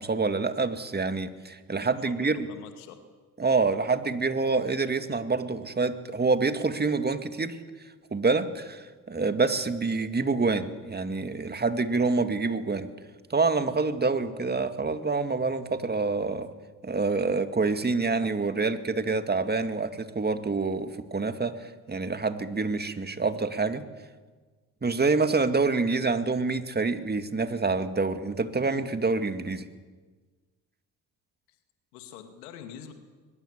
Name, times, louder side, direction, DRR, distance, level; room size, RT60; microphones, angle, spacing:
voice 1, 0.0-2.5 3.4-7.6 8.1-12.9 13.3-16.5 16.8-23.9 24.8-29.7, right 4 dB, 20° right, 9 dB, 2.2 m, -27 dB
voice 2, 2.0-2.9 31.9-32.9, left 9 dB, 80° left, 7 dB, 2.4 m, -44 dB
23.0 x 21.0 x 8.2 m, 1.4 s
hypercardioid pair, 60°, 45 cm